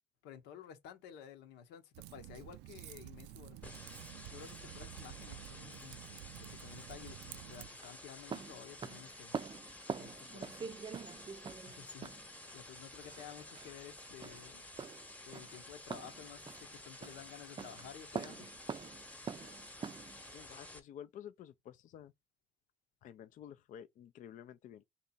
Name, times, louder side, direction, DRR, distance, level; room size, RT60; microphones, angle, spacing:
voice 1, 0.2-3.9 4.3-6.0 6.4-9.4 10.0-10.7 11.6-12.1 12.5-14.6 15.3-18.5, left 9 dB, 90° left, 0.9 m, -53 dB
Typing, 1.9-7.7, right 16 dB, 85° right, 0.4 m, -51 dB
sound 1, 3.6-20.8, left 1 dB, 10° left, 0.9 m, -52 dB
sound 2, 5.9-20.3, right 6 dB, 30° right, 0.4 m, -46 dB
voice 2, 20.2-22.1 23.0-24.8, left 9 dB, 50° left, 0.4 m, -51 dB
3.3 x 2.9 x 4.0 m
cardioid pair, 110°, 17 cm